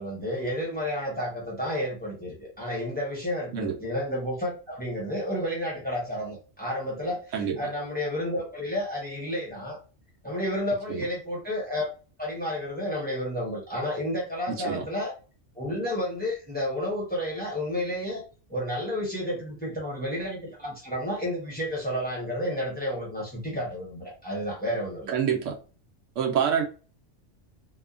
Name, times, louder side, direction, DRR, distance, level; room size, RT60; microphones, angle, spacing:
voice 1, 0.0-9.8 10.2-11.9 12.2-15.1 15.5-18.2 18.5-25.1, left 1 dB, 10° left, 0.8 m, -31 dB
voice 2, 14.5-14.8 25.1-25.6 26.2-26.6, right 7 dB, 75° right, 0.9 m, -26 dB
2.8 x 2.1 x 2.4 m
omnidirectional pair, 1.3 m